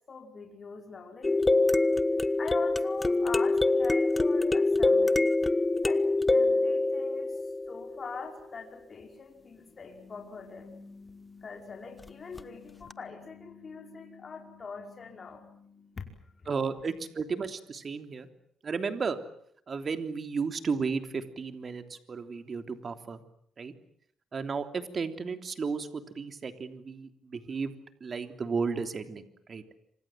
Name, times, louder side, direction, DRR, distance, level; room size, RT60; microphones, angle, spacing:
voice 1, 0.1-1.3 2.4-5.4 5.8-7.4 7.7-16.4, left 4 dB, 40° left, 3 dB, 5.2 m, -43 dB
sound 1, 1.2-8.1 12.4-12.5 12.9-13.0, left 2 dB, 20° left, 1.1 m, -25 dB
voice 2, 16.5-18.3 18.6-19.2 19.7-23.2 23.6-23.7 24.3-27.7 28.0-29.6, right 5 dB, 40° right, 8 dB, 3.3 m, -33 dB
27.5 x 26.0 x 7.7 m, 0.67 s
cardioid pair, 90°, 0 cm